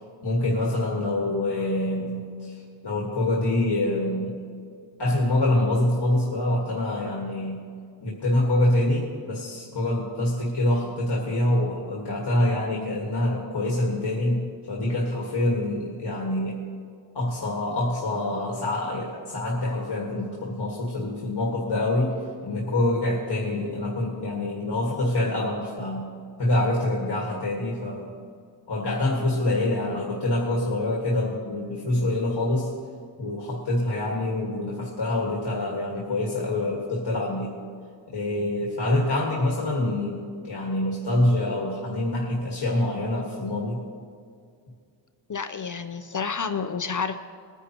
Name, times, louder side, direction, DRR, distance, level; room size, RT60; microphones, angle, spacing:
voice 1, 0.2-4.4 5.0-7.6 8.0-16.6 17.1-26.1 26.4-28.2 28.7-32.7 33.2-37.5 38.1-43.8, left 1 dB, 55° left, -3 dB, 1.8 m, -26 dB
voice 2, 45.3-47.2, left 5 dB, 40° left, 8 dB, 0.6 m, -29 dB
21.0 x 10.0 x 3.0 m, 2.2 s
wide cardioid pair, 125°, 47 cm